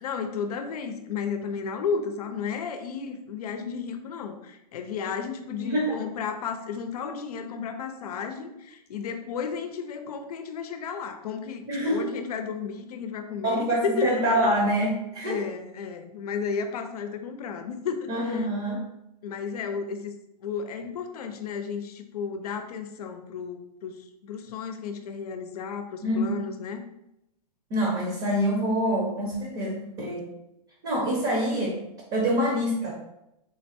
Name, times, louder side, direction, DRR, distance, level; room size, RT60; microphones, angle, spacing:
voice 1, 0.0-14.1 15.3-18.5 19.2-20.1 20.4-26.8, left 6 dB, 65° left, 7 dB, 0.6 m, -33 dB
voice 2, 5.6-6.0 11.7-12.0 13.4-15.4 18.1-18.8 26.0-26.2 27.7-30.3 30.8-31.8 32.1-32.9, equal, 30° right, -2 dB, 0.9 m, -26 dB
3.8 x 2.1 x 4.2 m, 0.85 s
hypercardioid pair, 150°, 21 cm